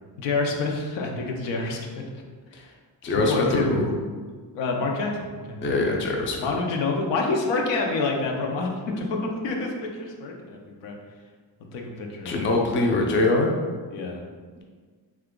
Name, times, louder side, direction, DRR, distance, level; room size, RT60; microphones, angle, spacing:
voice 1, 0.2-2.0 2.6-2.7 3.1-3.8 4.5-5.6 6.4-11.0 11.7-12.4 13.9-14.2, left 3 dB, 85° left, 1 dB, 0.6 m, -27 dB
voice 2, 3.0-3.9 5.6-6.5 12.2-13.5 14.6-14.7, left 2 dB, 30° left, 0 dB, 0.4 m, -23 dB
2.8 x 2.4 x 3.6 m, 1.5 s
cardioid pair, 110°, 44 cm